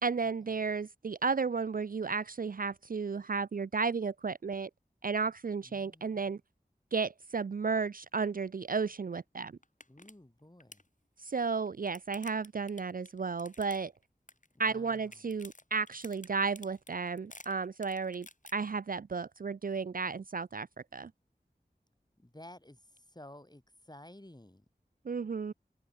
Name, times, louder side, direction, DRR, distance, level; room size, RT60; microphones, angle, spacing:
voice 1, 0.0-4.7 5.0-6.4 6.9-9.5 11.2-13.9 14.6-20.7 20.9-21.1 25.0-25.5, right 5 dB, 55° right, 0.4 m, -33 dB
voice 2, 5.7-6.3 9.9-10.8 14.7-15.1 22.2-24.6, left 1 dB, 25° left, 3.3 m, -53 dB
sound 1, 9.2-9.3 9.6-10.1 10.4-10.9 11.5-14.0 14.3-14.7 15.0-18.5, left 2 dB, 45° left, 3.9 m, -52 dB
wide cardioid pair, 45°, 17 cm